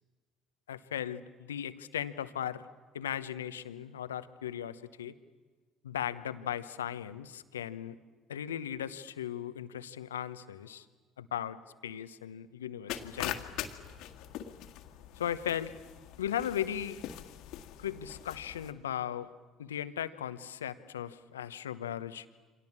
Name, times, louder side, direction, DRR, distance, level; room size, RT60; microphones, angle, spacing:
voice 1, 0.7-2.7 2.9-5.2 5.8-8.0 8.3-10.9 11.2-13.5 15.2-15.7 16.2-17.0 17.8-19.3 19.6-22.3, left 10 dB, 85° left, 13 dB, 0.9 m, -37 dB
sound 1, 12.9-18.7, left 12 dB, 65° left, 1.7 m, -42 dB
28.0 x 26.0 x 7.3 m, 1.4 s
hypercardioid pair, 60°, 0 cm